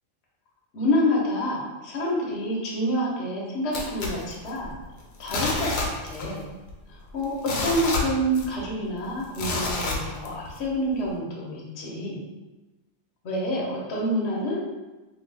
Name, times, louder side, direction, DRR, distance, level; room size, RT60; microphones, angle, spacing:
voice 1, 0.7-4.7 5.2-6.5 7.1-7.3 7.6-12.2 13.2-14.6, equal, 60° left, -4 dB, 1.0 m, -27 dB
sound 1, 3.7-4.8 5.2-6.4 6.7-6.8 7.2-8.7 9.3-10.6 11.1-11.2, left 2 dB, 90° left, 1.0 m, -29 dB
2.7 x 2.7 x 3.2 m, 1.1 s
omnidirectional pair, 1.3 m